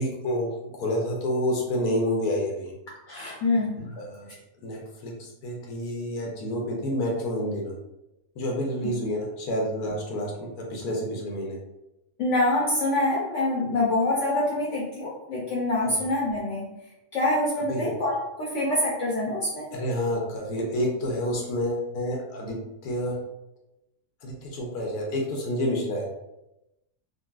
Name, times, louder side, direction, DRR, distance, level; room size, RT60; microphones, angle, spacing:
voice 1, 0.0-2.7 4.0-4.3 4.6-7.7 8.4-11.6 15.8-15.9 17.7-17.9 19.7-23.2 24.2-26.1, equal, 85° left, -1 dB, 1.2 m, -29 dB
voice 2, 3.1-3.9 12.2-16.7 17.1-19.7, left 2 dB, 60° left, -5 dB, 0.9 m, -25 dB
3.9 x 2.2 x 2.3 m, 0.92 s
omnidirectional pair, 1.6 m